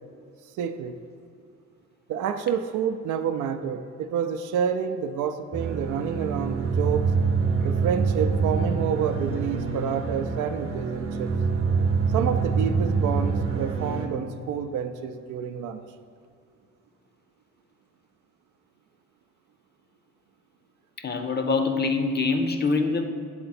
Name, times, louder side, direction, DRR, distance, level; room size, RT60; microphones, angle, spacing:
voice 1, 0.6-1.0 2.1-7.1 7.6-11.3 12.1-15.8, right 7 dB, 80° right, 8 dB, 0.5 m, -28 dB
sound 1, 5.5-14.1, right 5 dB, 45° right, 0.8 m, -25 dB
voice 2, 21.0-23.1, left 4 dB, 35° left, 6 dB, 0.6 m, -24 dB
7.8 x 3.9 x 4.2 m, 2.2 s
cardioid pair, 90°, 30 cm